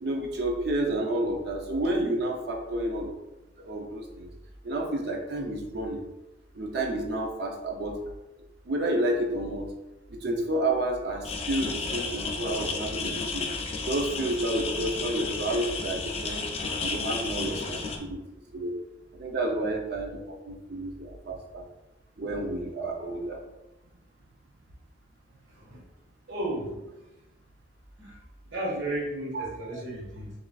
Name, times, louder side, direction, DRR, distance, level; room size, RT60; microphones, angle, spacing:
voice 1, 0.0-3.1 3.6-4.3 4.6-6.0 6.5-8.0 8.7-9.7 10.1-13.5 13.9-16.4 16.8-18.2 18.5-18.7 19.2-21.6 22.2-23.4 29.3-29.5, right 1 dB, 60° right, 1 dB, 0.5 m, -30 dB
sound 1, 11.2-18.0, left 4 dB, 35° left, 0.4 m, -32 dB
voice 2, 25.5-25.8 26.3-26.8 28.0-28.2 28.4-30.3, right 1 dB, 85° right, -3 dB, 1.5 m, -33 dB
6.9 x 2.5 x 2.3 m, 0.99 s
head